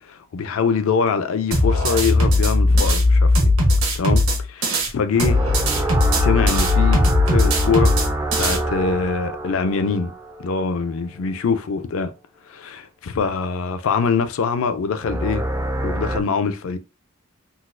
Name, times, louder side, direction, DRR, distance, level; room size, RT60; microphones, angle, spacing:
voice 1, 0.0-3.5 4.0-4.2 4.5-5.4 6.1-8.0 8.4-10.1 10.4-12.1 12.5-15.4 15.8-16.8, left 5 dB, 65° left, 0.4 m, -23 dB
sound 1, 1.5-4.9 5.2-8.6, left 2 dB, 70° right, 1.0 m, -18 dB
sound 2, 5.1-10.9 15.0-16.2, right 2 dB, 15° right, 0.3 m, -26 dB
3.9 x 2.3 x 2.5 m
head